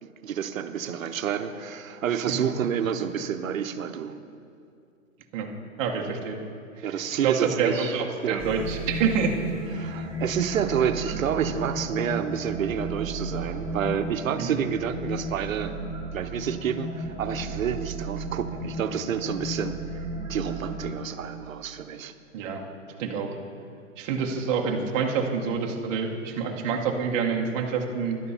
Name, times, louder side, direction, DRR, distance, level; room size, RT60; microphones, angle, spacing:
voice 1, 0.0-4.2 6.8-8.6 9.8-15.7 16.1-20.0 20.3-22.1, right 8 dB, 75° right, 10 dB, 0.8 m, -29 dB
voice 2, 5.8-6.4 6.8-6.9 7.2-9.4 14.4-14.6 22.3-22.6 23.0-23.4 24.0-28.2, right 6 dB, 25° right, 1 dB, 0.9 m, -27 dB
sound 1, 8.4-20.9, right 2 dB, 5° right, 1.8 m, -34 dB
11.0 x 8.1 x 5.6 m, 2.5 s
hypercardioid pair, 150°, 40 cm